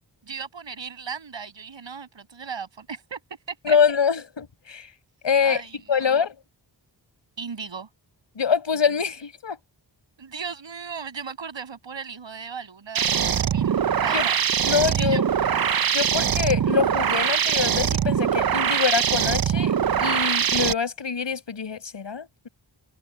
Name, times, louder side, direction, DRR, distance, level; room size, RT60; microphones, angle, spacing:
voice 1, 0.2-3.2 3.5-3.8 5.4-6.3 7.4-7.9 10.2-13.7 14.0-14.4 14.9-15.2, right 6 dB, 85° right, 7.8 m, -36 dB
voice 2, 3.6-4.9 5.2-5.6 5.9-6.3 8.3-9.6 14.1-14.3 14.6-15.2 15.9-19.7 20.0-22.5, left 6 dB, 75° left, 6.6 m, -24 dB
sound 1, 13.0-20.7, right 8 dB, 55° right, 0.7 m, -22 dB
wide cardioid pair, 125°, 44 cm